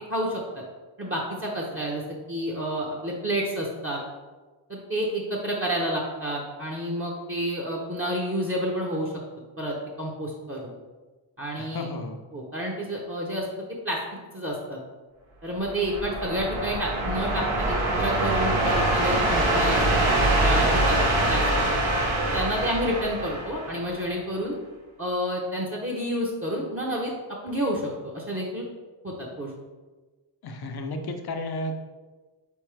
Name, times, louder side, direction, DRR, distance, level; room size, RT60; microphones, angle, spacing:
voice 1, 0.1-0.4 1.0-2.0 2.3-4.0 4.7-9.1 9.6-10.7 11.4-11.9 12.3-13.4 13.8-14.0 14.3-14.8 15.4-20.1 20.4-21.0 21.3-21.4 22.3-24.6 25.0-27.1 27.4-28.6 29.0-29.5, equal, 30° right, -3 dB, 0.8 m, -29 dB
voice 2, 11.6-12.2 30.4-31.8, left 1 dB, 50° left, 5 dB, 0.6 m, -33 dB
sound 1, 15.6-24.1, right 1 dB, 75° right, 0.9 m, -24 dB
4.1 x 3.5 x 3.2 m, 1.3 s
cardioid pair, 50°, 47 cm